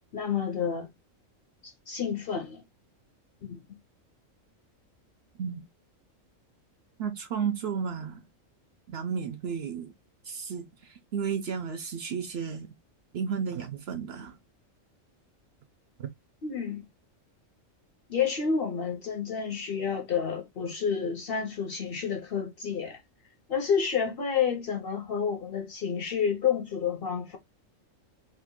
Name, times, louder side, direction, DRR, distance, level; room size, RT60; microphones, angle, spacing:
voice 1, 0.1-0.9 1.6-2.6 3.4-3.6 16.4-16.8 18.1-23.0 23.5-27.4, left 7 dB, 55° left, 0.7 m, -29 dB
voice 2, 7.0-8.2 8.9-9.9 10.3-10.6 11.1-12.7 13.1-14.4 16.0-16.1, right 6 dB, 60° right, 0.7 m, -32 dB
2.8 x 2.4 x 3.6 m
omnidirectional pair, 1.4 m